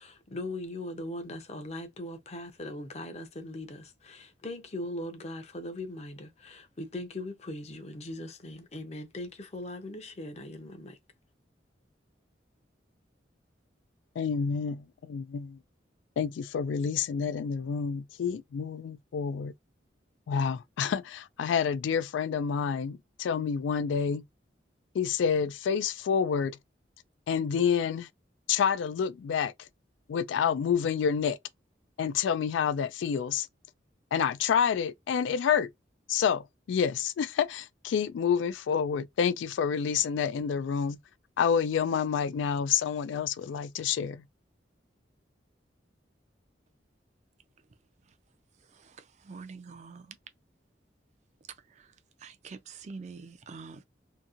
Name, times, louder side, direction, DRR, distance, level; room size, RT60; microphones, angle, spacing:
voice 1, 0.0-11.0, left 1 dB, 35° left, 0.6 m, -40 dB
voice 2, 14.2-15.6 16.2-19.5 20.3-24.2 24.9-26.6 27.3-28.1 28.5-29.7 30.1-31.4 32.0-33.5 34.1-35.7 36.1-41.0 41.4-44.2, left 7 dB, 90° left, 0.3 m, -28 dB
voice 3, 48.7-50.2 51.7-51.9 52.2-53.8, right 4 dB, 40° right, 0.4 m, -46 dB
2.8 x 2.6 x 2.4 m
head